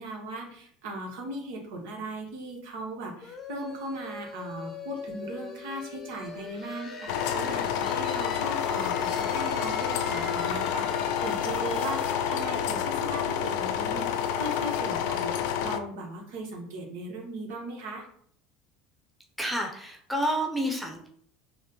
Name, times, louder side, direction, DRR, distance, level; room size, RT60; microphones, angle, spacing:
voice 1, 0.0-18.1, right 1 dB, 80° right, 0 dB, 1.1 m, -38 dB
sound 1, 3.2-14.7, left 4 dB, 30° left, 0.6 m, -41 dB
sound 2, 7.1-15.8, left 8 dB, 75° left, 0.3 m, -29 dB
voice 2, 19.4-21.1, equal, ahead, 0 dB, 0.8 m, -29 dB
5.4 x 2.2 x 3.0 m, 0.64 s
supercardioid pair, 115°, 0 cm